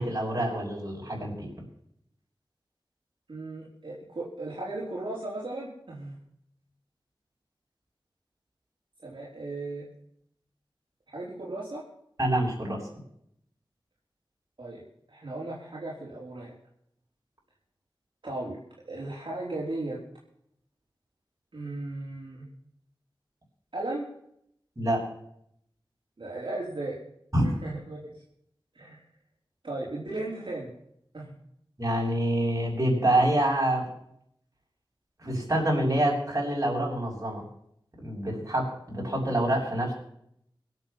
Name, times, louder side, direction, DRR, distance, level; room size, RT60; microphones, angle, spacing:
voice 1, 0.0-1.5 12.2-12.8 24.8-25.0 27.3-27.5 31.8-33.9 35.2-37.4 38.0-39.9, right 1 dB, 40° right, -3 dB, 7.4 m, -26 dB
voice 2, 3.3-6.1 9.0-9.9 11.1-11.8 14.6-14.8 15.1-16.5 18.2-18.6 18.8-20.0 21.5-22.5 23.7-24.1 26.2-27.0 27.4-28.1 28.7-29.0 29.6-30.7 31.1-31.3, right 2 dB, 65° right, -5 dB, 4.3 m, -36 dB
24.5 x 8.3 x 5.9 m, 0.72 s
wide cardioid pair, 70°, 9 cm